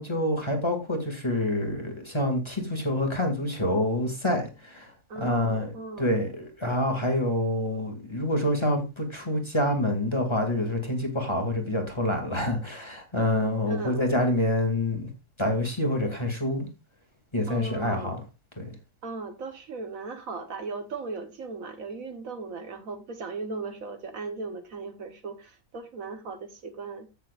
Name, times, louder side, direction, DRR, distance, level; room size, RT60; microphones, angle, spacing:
voice 1, 0.0-15.1 15.4-16.7 17.3-18.2 18.6-18.8, left 1 dB, 20° left, 2.2 m, -27 dB
voice 2, 5.1-6.1 13.6-14.0 17.5-18.2 19.0-27.1, right 4 dB, 65° right, 1.5 m, -37 dB
15.0 x 6.9 x 2.4 m
omnidirectional pair, 1.6 m